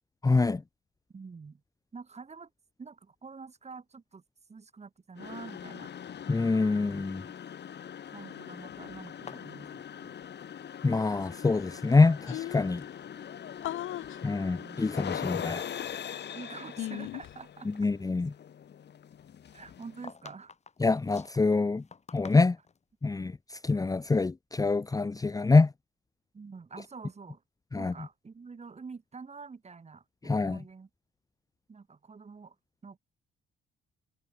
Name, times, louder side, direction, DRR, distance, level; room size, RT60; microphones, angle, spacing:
voice 1, 0.2-0.6 6.3-7.2 10.8-12.8 14.2-15.6 17.8-18.3 20.8-21.8 22.1-22.6 23.0-25.7 27.7-27.9 30.2-30.6, left 3 dB, 20° left, 0.8 m, -25 dB
voice 2, 1.1-1.6 1.9-2.5 2.8-4.2 4.5-5.9 7.2-7.3 8.1-10.2 14.6-14.9 16.3-17.9 19.5-20.5 26.3-27.4 27.7-30.9 31.7-32.6 32.8-33.0, right 5 dB, 35° right, 7.3 m, -47 dB
sound 1, 5.2-20.1, left 9 dB, 60° left, 5.9 m, -42 dB
sound 2, 9.1-11.1 11.3-12.1 12.7-13.3 13.6-13.8 14.5-14.6 15.1-16.7 17.0-17.1 19.4-22.8, left 5 dB, 35° left, 3.4 m, -52 dB
sound 3, 11.6-11.7 11.9-12.0 12.3-12.8 13.6-14.2 15.3-16.1 16.8-17.4, left 13 dB, 80° left, 4.1 m, -38 dB
cardioid pair, 90°, 20 cm